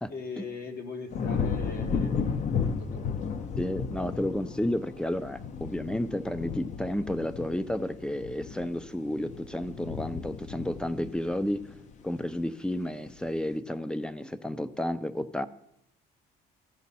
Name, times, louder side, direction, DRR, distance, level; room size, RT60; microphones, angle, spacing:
voice 1, 0.1-3.7, left 4 dB, 65° left, 5 dB, 1.4 m, -41 dB
sound 1, 1.1-12.4 12.8-13.3, left 6 dB, 45° left, 0.7 m, -34 dB
voice 2, 3.6-11.7 12.0-15.5, left 1 dB, 5° left, 14 dB, 0.4 m, -31 dB
14.5 x 5.2 x 4.1 m, 0.77 s
cardioid pair, 110°, 17 cm